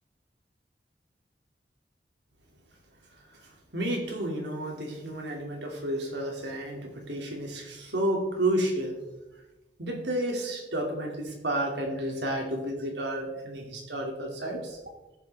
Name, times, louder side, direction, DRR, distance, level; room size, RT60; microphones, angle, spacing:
voice 1, 3.3-9.0 9.8-14.8, right 1 dB, 80° right, 1 dB, 2.6 m, -31 dB
15.5 x 7.1 x 3.5 m, 1.1 s
head